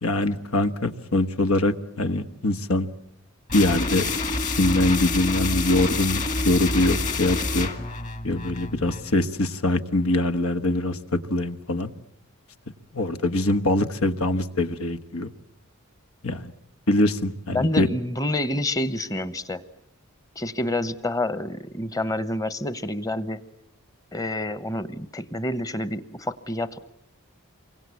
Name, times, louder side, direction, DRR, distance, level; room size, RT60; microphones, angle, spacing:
voice 1, 0.0-2.9 3.5-4.1 4.4-7.7 8.2-11.9 12.9-15.3 16.2-16.5 16.9-17.9, left 1 dB, 85° left, 10 dB, 1.4 m, -23 dB
sound 1, 3.5-9.1, left 3 dB, 35° left, 1.9 m, -27 dB
voice 2, 17.5-19.6 20.4-23.4 24.1-26.8, left 1 dB, 15° left, 14 dB, 1.0 m, -28 dB
28.5 x 23.5 x 8.4 m, 0.80 s
head